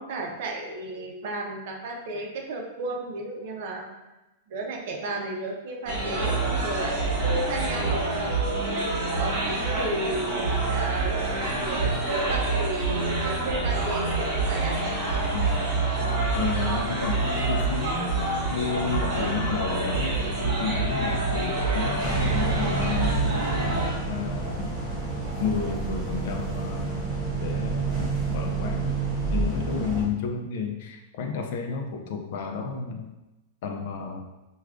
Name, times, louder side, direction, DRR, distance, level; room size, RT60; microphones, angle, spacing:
voice 1, 0.0-3.9 4.5-8.8 9.2-14.8, right 2 dB, 50° right, 1 dB, 0.6 m, -33 dB
sound 1, 5.9-23.9, right 3 dB, 35° right, 1.2 m, -26 dB
voice 2, 15.3-15.8 16.3-18.2 18.5-20.2 20.4-23.5 24.1-24.7 25.4-26.9 27.4-29.0 29.3-33.1 33.6-34.2, left 6 dB, 55° left, 3 dB, 0.4 m, -31 dB
sound 2, 22.0-30.0, right 4 dB, ahead, 0.7 m, -29 dB
4.7 x 2.3 x 2.4 m, 1.0 s
supercardioid pair, 165°, 0 cm